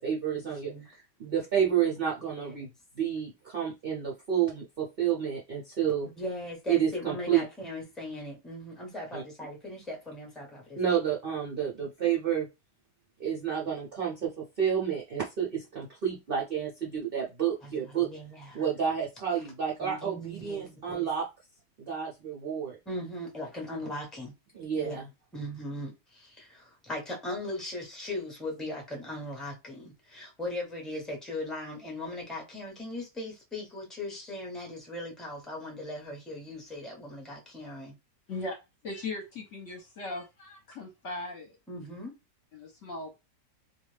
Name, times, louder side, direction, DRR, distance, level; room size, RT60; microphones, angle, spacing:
voice 1, 0.0-2.7 3.0-6.1 6.7-7.4 9.1-9.2 10.8-12.5 13.2-18.1 18.5-21.3 21.9-22.8 24.5-25.1, right 8 dB, 60° right, 0.6 m, -30 dB
voice 2, 2.2-2.7 6.2-10.8 17.6-18.7 19.8-21.1 22.9-24.3 24.7-25.0 25.3-37.9 41.7-42.1, left 1 dB, ahead, 0.7 m, -39 dB
voice 3, 38.8-41.6 42.5-43.1, left 2 dB, 55° left, 1.0 m, -38 dB
2.6 x 2.3 x 3.2 m
omnidirectional pair, 1.8 m